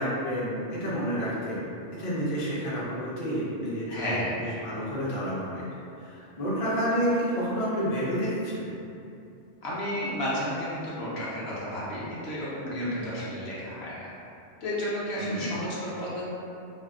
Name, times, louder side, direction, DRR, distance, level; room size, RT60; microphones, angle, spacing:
voice 1, 0.0-1.6 1.9-5.6 6.0-8.7 15.1-15.5, equal, 40° left, -8 dB, 0.5 m, -29 dB
voice 2, 3.9-4.3 9.6-14.1 14.6-16.3, equal, 60° left, -8 dB, 0.9 m, -32 dB
2.7 x 2.6 x 2.5 m, 2.7 s
omnidirectional pair, 1.3 m